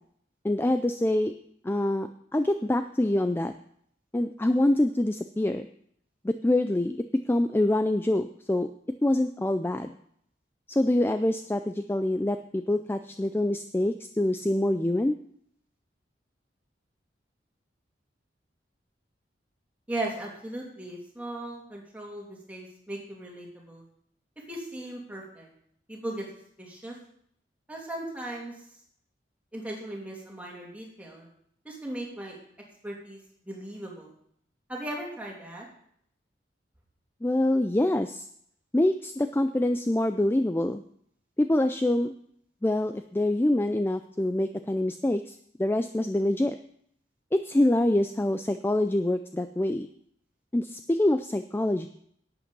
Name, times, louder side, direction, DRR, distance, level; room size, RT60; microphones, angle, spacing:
voice 1, 0.4-1.3 1.6-3.5 4.1-5.7 6.2-8.7 9.0-10.0 10.7-15.2 37.2-38.2 38.7-40.8 41.4-42.1 42.6-46.6 47.3-49.9 50.5-51.9, left 1 dB, 15° left, 9 dB, 0.4 m, -25 dB
voice 2, 19.9-23.8 24.5-25.5 25.9-26.2 26.6-27.0 27.7-28.5 29.5-31.3 31.6-32.4 32.8-33.2 33.5-34.1 34.7-35.7, right 1 dB, 10° right, -3 dB, 2.9 m, -37 dB
11.5 x 8.6 x 5.3 m, 0.67 s
head